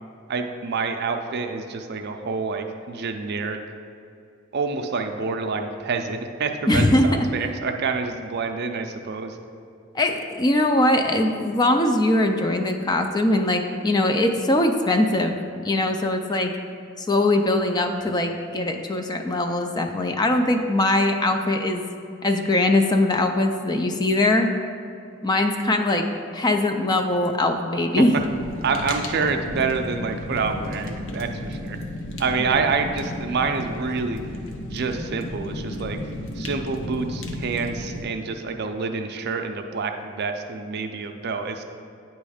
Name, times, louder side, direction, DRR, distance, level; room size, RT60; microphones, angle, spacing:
voice 1, 0.3-3.6 4.5-9.4 28.0-28.1 28.6-31.8 32.2-34.2 34.7-36.0 36.4-41.6, right 4 dB, 55° right, 5 dB, 0.5 m, -27 dB
voice 2, 6.7-7.3 9.9-15.4 15.6-16.5 17.0-21.9 22.2-24.5 25.2-26.1 26.3-28.1, left 1 dB, 20° left, 5 dB, 0.4 m, -21 dB
Fire, 28.2-38.0, left 1 dB, 65° left, 0.7 m, -33 dB
9.2 x 3.1 x 4.9 m, 2.5 s
head